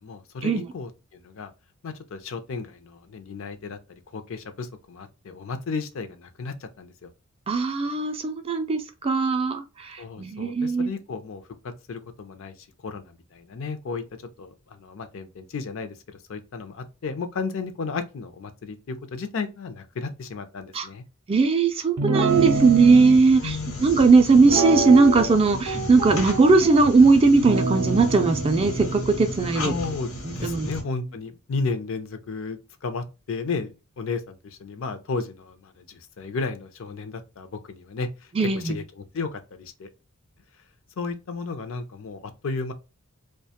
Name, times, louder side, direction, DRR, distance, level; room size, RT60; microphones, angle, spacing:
voice 1, 0.0-1.5 1.8-3.8 4.1-7.1 10.0-12.5 12.8-14.0 14.4-21.0 23.4-23.9 29.6-30.1 30.4-38.1 38.4-38.8 39.1-39.9 41.0-42.7, left 4 dB, 60° left, 0.4 m, -33 dB
voice 2, 7.5-10.9 20.7-20.9 21.3-29.7 30.2-30.7 38.3-38.8, right 4 dB, 25° right, 0.3 m, -19 dB
Guitar, 22.0-23.2 24.4-25.4 25.7-26.8 27.4-30.9, right 3 dB, 85° right, 0.5 m, -27 dB
sound 1, 22.3-30.8, left 1 dB, 80° left, 1.0 m, -35 dB
2.4 x 2.2 x 2.7 m
head